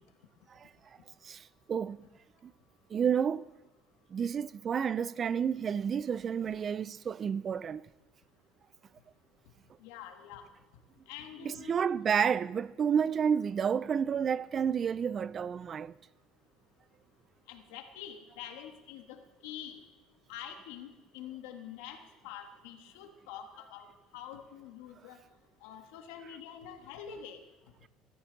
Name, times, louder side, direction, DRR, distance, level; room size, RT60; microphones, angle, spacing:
voice 1, 1.2-2.1 2.4-2.5 2.9-3.5 4.1-7.9 11.4-15.9, right 7 dB, 35° right, 0.4 m, -30 dB
voice 2, 9.8-10.5 11.1-11.9 17.5-19.8 20.3-25.2 25.6-27.4, left 9 dB, 85° left, 1.6 m, -46 dB
18.0 x 13.5 x 4.1 m
cardioid pair, 115°, 0 cm